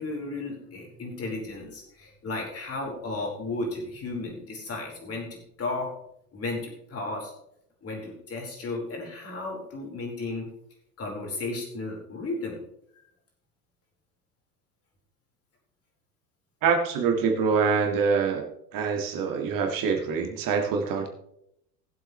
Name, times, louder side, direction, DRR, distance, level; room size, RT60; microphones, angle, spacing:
voice 1, 0.0-5.9 6.3-7.3 7.8-10.5 11.0-12.6, left 2 dB, 30° left, -1 dB, 4.8 m, -34 dB
voice 2, 16.6-18.4 18.7-21.1, right 5 dB, 45° right, 3 dB, 2.0 m, -25 dB
19.5 x 7.9 x 3.3 m, 0.77 s
figure-of-eight pair, 80°, 48 cm